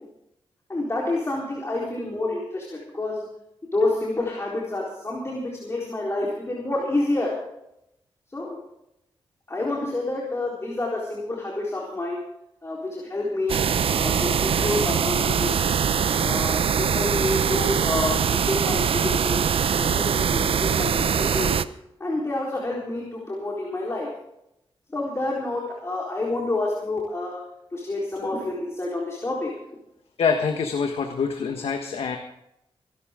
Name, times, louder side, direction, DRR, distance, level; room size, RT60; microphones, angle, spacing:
voice 1, 0.7-3.3 3.6-7.3 8.3-8.6 9.5-12.2 12.6-13.6 13.9-15.8 16.2-19.4 19.8-21.6 22.0-24.1 24.9-27.4 27.7-29.5, left 2 dB, 30° left, -3 dB, 4.0 m, -28 dB
sound 1, 13.5-21.6, right 7 dB, 70° right, 0.7 m, -23 dB
voice 2, 30.2-32.2, left 5 dB, 80° left, 4 dB, 1.4 m, -25 dB
24.0 x 12.5 x 3.7 m, 0.83 s
cardioid pair, 85°, 10 cm